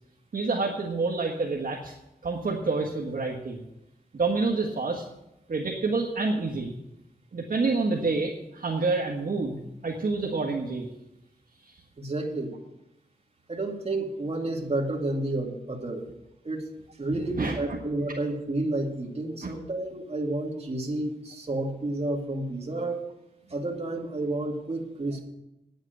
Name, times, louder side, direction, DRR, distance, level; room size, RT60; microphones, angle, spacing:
voice 1, 0.3-1.9 2.2-3.6 4.1-5.0 5.5-6.7 7.3-9.6 9.8-10.9 11.6-11.7 17.3-17.5 19.4-19.5, right 3 dB, 60° right, -1 dB, 1.5 m, -28 dB
voice 2, 12.0-12.5 13.5-16.0 16.4-16.7 17.0-23.0 23.5-25.2, right 2 dB, 40° right, 0 dB, 2.3 m, -30 dB
9.8 x 8.0 x 7.8 m, 0.89 s
wide cardioid pair, 70°, 16 cm